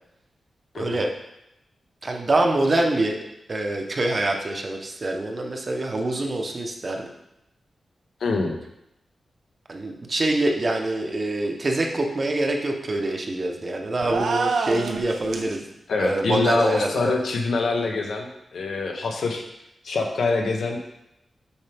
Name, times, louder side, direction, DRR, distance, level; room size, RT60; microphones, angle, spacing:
voice 1, 0.7-1.1 2.0-3.2 3.5-7.1 9.7-15.7 16.0-17.1, right 2 dB, 35° right, 2 dB, 0.8 m, -25 dB
voice 2, 8.2-8.6 15.9-19.4 19.8-20.9, left 3 dB, 80° left, 2 dB, 0.9 m, -25 dB
sound 1, 14.0-15.6, right 4 dB, 85° right, 0.7 m, -26 dB
7.1 x 4.5 x 3.4 m, 0.85 s
wide cardioid pair, 120°, 0 cm